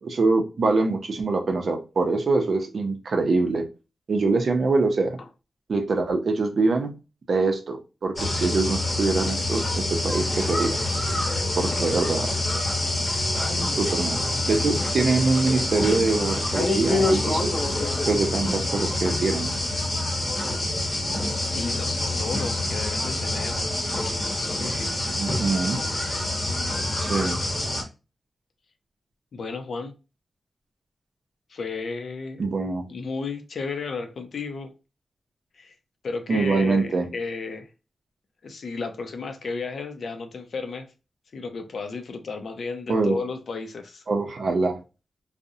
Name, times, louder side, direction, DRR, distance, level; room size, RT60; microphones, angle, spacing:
voice 1, 0.0-3.7 4.1-5.2 5.7-6.9 7.3-10.8 11.5-12.3 13.8-14.2 14.5-17.5 18.1-19.5 25.2-25.8 27.0-27.4 32.4-32.9 36.3-37.1 42.9-43.2 44.1-44.8, right 3 dB, 55° right, 0.5 m, -24 dB
sound 1, 8.2-27.8, left 1 dB, 35° left, 0.8 m, -26 dB
voice 2, 21.5-23.6 24.0-24.9 29.3-29.9 31.5-32.4 32.9-34.7 35.6-35.7 36.0-37.7 38.4-40.9 41.3-44.0, left 4 dB, 65° left, 0.4 m, -33 dB
2.4 x 2.0 x 2.6 m
wide cardioid pair, 160°, 0 cm